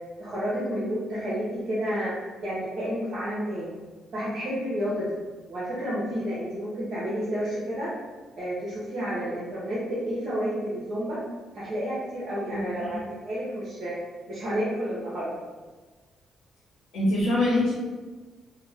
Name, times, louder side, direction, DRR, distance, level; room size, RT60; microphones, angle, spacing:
voice 1, 0.2-2.1 2.4-3.7 4.1-5.2 5.5-7.9 8.3-11.2 11.5-13.9 14.3-15.3, equal, 55° right, -9 dB, 0.8 m, -30 dB
voice 2, 12.5-13.0 16.9-17.7, left 1 dB, 85° left, -9 dB, 0.8 m, -25 dB
2.4 x 2.1 x 3.2 m, 1.3 s
cardioid pair, 90°, 0 cm